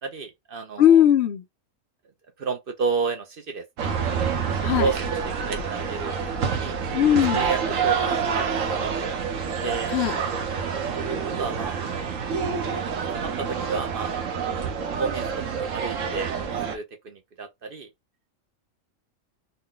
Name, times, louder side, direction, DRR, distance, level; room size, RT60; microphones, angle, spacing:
voice 1, 0.0-1.0 2.4-3.9 4.6-6.8 7.4-8.2 8.5-8.9 9.6-9.9 10.6-10.7 11.2-11.8 12.7-14.2 15.0-16.4 16.7-17.9, right 4 dB, 55° right, 0.7 m, -31 dB
voice 2, 0.8-1.4 4.6-4.9 6.9-7.4 9.9-10.2, left 10 dB, 60° left, 0.9 m, -18 dB
sound 1, 3.8-16.8, right 6 dB, 75° right, 1.2 m, -27 dB
3.9 x 2.2 x 3.8 m
omnidirectional pair, 1.4 m